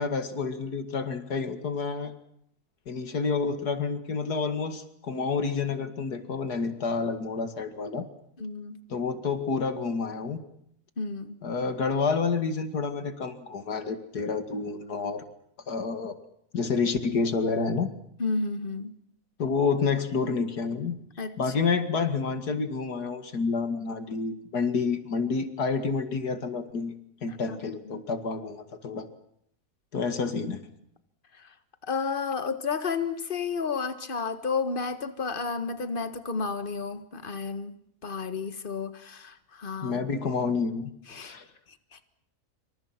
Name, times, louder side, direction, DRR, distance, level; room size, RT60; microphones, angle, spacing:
voice 1, 0.0-2.1 2.9-8.1 8.9-10.4 11.4-15.2 15.7-16.2 16.5-17.9 19.4-21.0 21.4-26.9 27.2-29.1 29.9-30.6 39.8-40.9 41.2-41.5, left 4 dB, 85° left, 2.7 m, -29 dB
voice 2, 8.4-8.8 11.0-11.4 18.2-18.9 21.2-21.5 27.3-27.6 27.9-28.0 31.4-31.5 31.9-37.8 38.0-40.0 41.1-41.3 41.9-42.0, left 4 dB, 35° left, 1.8 m, -32 dB
27.0 x 25.0 x 6.0 m
omnidirectional pair, 1.6 m